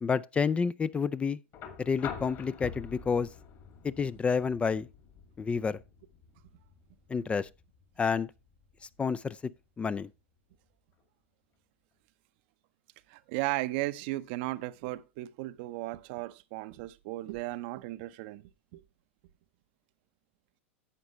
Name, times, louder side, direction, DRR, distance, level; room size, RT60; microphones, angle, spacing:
voice 1, 0.0-1.4 1.8-3.3 3.8-4.9 5.4-5.8 7.1-7.5 8.0-8.3 9.0-9.4 9.8-10.1, left 5 dB, 15° left, 0.4 m, -29 dB
sound 1, 1.5-9.6 11.0-11.1, left 7 dB, 40° left, 2.2 m, -46 dB
voice 2, 13.1-18.4 18.7-18.8, right 18 dB, 50° right, 0.7 m, -35 dB
11.0 x 8.0 x 3.1 m
hypercardioid pair, 95°, 7 cm